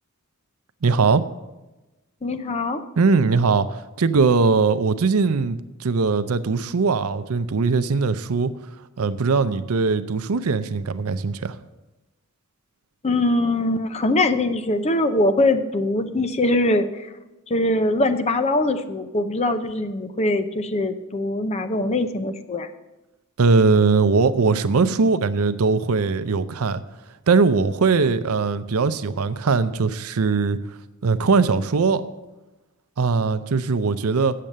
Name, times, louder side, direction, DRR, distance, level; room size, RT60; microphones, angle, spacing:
voice 1, 0.8-1.2 3.0-8.5 9.0-11.6 23.4-26.8 27.3-30.6 31.0-32.0 33.0-34.3, right 4 dB, 70° right, 12 dB, 0.6 m, -20 dB
voice 2, 2.2-2.8 13.0-17.1 17.5-22.7, left 2 dB, 30° left, 9 dB, 0.6 m, -22 dB
8.8 x 7.5 x 6.6 m, 1.0 s
head